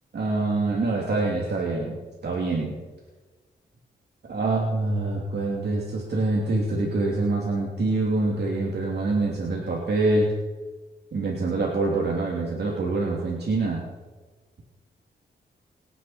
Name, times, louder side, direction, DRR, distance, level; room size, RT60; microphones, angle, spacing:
voice 1, 0.1-2.7 4.3-10.3 11.1-13.8, right 2 dB, 60° right, -2 dB, 2.9 m, -25 dB
25.5 x 9.7 x 4.4 m, 1.3 s
cardioid pair, 80°, 19 cm